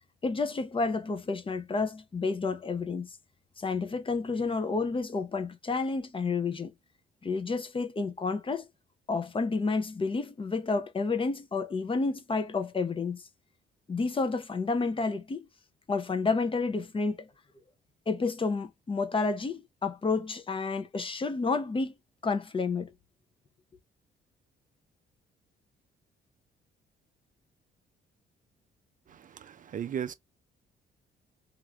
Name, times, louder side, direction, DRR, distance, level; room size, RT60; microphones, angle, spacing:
voice 1, 0.2-3.1 3.6-6.7 7.2-8.7 9.1-13.2 13.9-15.5 15.9-17.3 18.1-21.9 22.2-22.9, left 4 dB, 25° left, 0.6 m, -30 dB
voice 2, 29.1-30.1, right 8 dB, 40° right, 0.4 m, -36 dB
3.0 x 2.4 x 2.2 m
cardioid pair, 90°, 20 cm